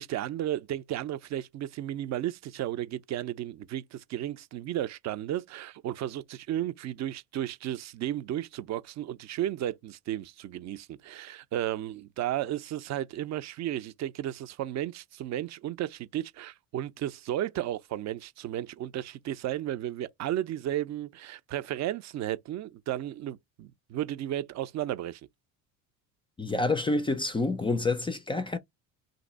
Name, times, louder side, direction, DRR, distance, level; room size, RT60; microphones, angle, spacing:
voice 1, 0.0-25.2, right 12 dB, 45° right, 0.5 m, -34 dB
voice 2, 26.4-28.6, left 3 dB, 15° left, 0.3 m, -28 dB
2.9 x 2.5 x 4.0 m
cardioid pair, 110°, 38 cm